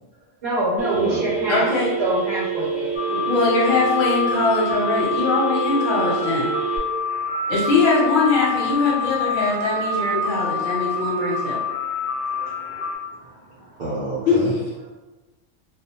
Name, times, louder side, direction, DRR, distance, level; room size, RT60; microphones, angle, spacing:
voice 1, 0.4-1.7 2.0-2.9, right 1 dB, 60° right, -7 dB, 0.8 m, -24 dB
Telephone, 0.8-6.8, right 8 dB, ahead, 0.5 m, -27 dB
voice 2, 0.9-1.3 3.8-3.9 8.4-8.9 10.2-10.3 12.3-14.5, right 2 dB, 75° right, -7 dB, 0.4 m, -33 dB
voice 3, 1.5-1.9 3.1-6.5 7.5-11.6 14.3-14.4, left 3 dB, 75° left, -4 dB, 1.1 m, -21 dB
sound 1, 2.9-13.0, left 4 dB, 50° left, 0.7 m, -26 dB
2.3 x 2.1 x 2.8 m, 1.1 s
omnidirectional pair, 1.4 m